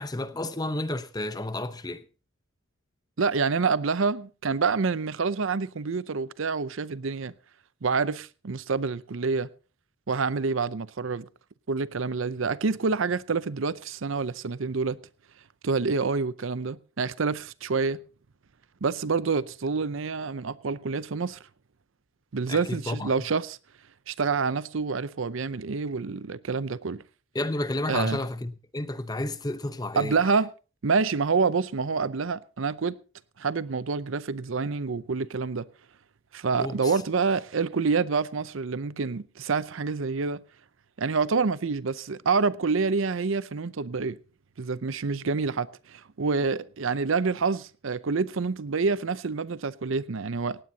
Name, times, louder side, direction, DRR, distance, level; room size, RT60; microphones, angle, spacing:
voice 1, 0.0-2.0 22.5-23.1 27.3-30.2 36.6-37.0, left 1 dB, 20° left, 0.8 m, -31 dB
voice 2, 3.2-7.3 7.8-9.5 10.1-11.3 11.7-15.0 15.6-18.0 18.8-21.4 22.3-23.6 24.1-27.0 27.9-28.2 30.0-30.5 30.8-33.0 33.4-35.7 36.3-40.4 41.0-44.2 44.6-50.6, right 4 dB, 70° right, 0.6 m, -27 dB
18.0 x 17.0 x 2.8 m
head